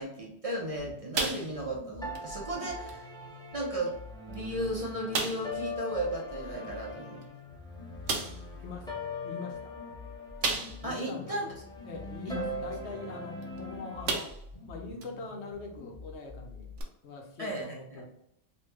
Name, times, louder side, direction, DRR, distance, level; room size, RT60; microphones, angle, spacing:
voice 1, 0.0-3.1 3.5-3.9 4.3-7.2 10.8-11.5 12.3-12.4 17.4-18.0, right 1 dB, 35° right, -3 dB, 0.8 m, -35 dB
sound 1, 0.8-16.8, left 3 dB, 35° left, 1.0 m, -49 dB
sound 2, 1.1-1.8 2.1-2.3 2.9-3.0 3.8-3.9 4.3-4.4 5.1-5.6 7.2-7.3 8.1-8.5 10.4-11.0 11.5-11.6 13.4-13.6 14.0-14.6 15.0-15.1 16.8-16.9, right 4 dB, 80° right, 1.0 m, -32 dB
sound 3, 2.0-14.2, left 1 dB, 5° left, 0.4 m, -42 dB
voice 2, 8.5-8.9 9.2-9.7 10.8-11.5 11.8-14.3 14.7-16.8 17.0-18.0, left 4 dB, 70° left, 2 dB, 1.0 m, -42 dB
3.2 x 3.1 x 3.3 m, 0.76 s
omnidirectional pair, 1.2 m